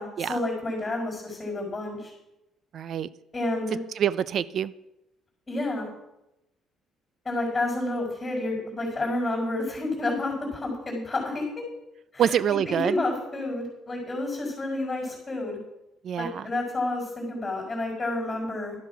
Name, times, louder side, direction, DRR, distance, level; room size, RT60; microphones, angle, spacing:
voice 1, 0.0-2.1 3.3-3.8 5.5-5.9 7.3-11.5 12.1-15.6 16.2-18.8, left 2 dB, 15° left, -5 dB, 5.4 m, -30 dB
voice 2, 2.7-3.1 4.0-4.7 12.2-13.0 16.0-16.5, right 9 dB, 50° right, 18 dB, 0.4 m, -26 dB
12.5 x 11.5 x 6.0 m, 0.90 s
cardioid pair, 135°, 0 cm